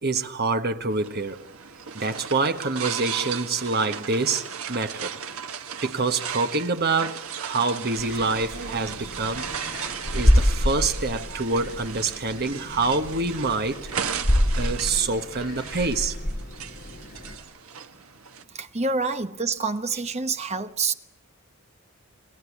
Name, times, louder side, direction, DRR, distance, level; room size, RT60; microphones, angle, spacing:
voice 1, 0.0-1.4 1.9-5.1 5.8-9.5 10.1-13.8 14.5-16.1, right 3 dB, 45° right, 1.5 m, -26 dB
sound 1, 0.9-18.4, right 7 dB, 70° right, 1.4 m, -36 dB
sound 2, 8.0-17.4, equal, 35° left, 6.0 m, -27 dB
voice 2, 18.5-20.9, right 4 dB, 30° right, 1.1 m, -27 dB
28.5 x 20.0 x 8.4 m
head